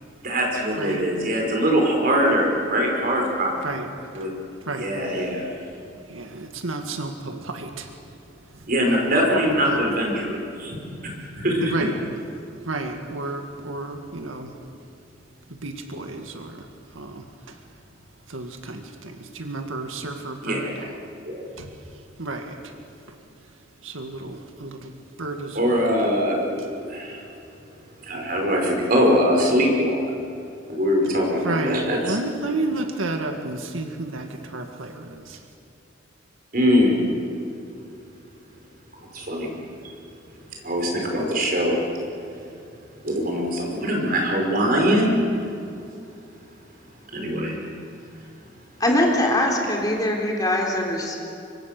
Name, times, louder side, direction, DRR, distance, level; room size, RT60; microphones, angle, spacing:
voice 1, 0.2-3.5 4.1-4.3 4.8-5.5 8.7-10.8 11.3-11.7 20.4-20.9 21.3-21.5 25.6-27.2 28.0-30.0 30.7-32.2 36.5-37.1 39.1-39.5 40.6-41.8 43.0-45.2 47.1-47.6, equal, 45° right, 5.4 m, -22 dB
voice 2, 0.8-1.1 3.6-7.9 8.4-9.1 9.7-9.8 11.6-12.0 12.6-14.5 15.5-16.7 16.9-17.6 18.3-20.8 21.6-22.8 23.1-23.2 23.8-25.9 26.6-26.7 31.4-35.4, right 2 dB, 90° right, 2.1 m, -32 dB
voice 3, 48.8-51.2, left 1 dB, 20° left, 3.5 m, -22 dB
25.5 x 24.0 x 6.8 m
head